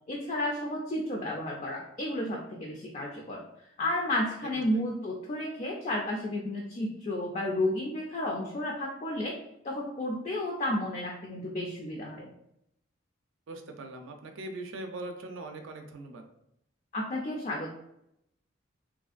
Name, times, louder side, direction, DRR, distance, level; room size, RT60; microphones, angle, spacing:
voice 1, 0.1-3.4 3.8-9.4 9.6-12.3 16.9-17.7, left 1 dB, 35° left, -1 dB, 0.3 m, -32 dB
voice 2, 13.5-16.2, right 2 dB, 75° right, 5 dB, 0.4 m, -41 dB
3.1 x 2.5 x 2.4 m, 0.79 s
head